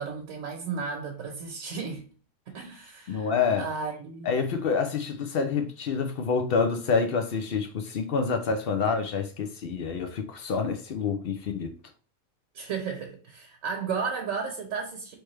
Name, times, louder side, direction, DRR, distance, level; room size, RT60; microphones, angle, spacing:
voice 1, 0.0-2.1 2.5-3.3 3.6-4.3 12.5-15.2, right 5 dB, 70° right, 1.2 m, -34 dB
voice 2, 3.1-3.7 4.2-11.7, left 5 dB, 60° left, 0.6 m, -27 dB
4.5 x 3.2 x 3.2 m
omnidirectional pair, 1.4 m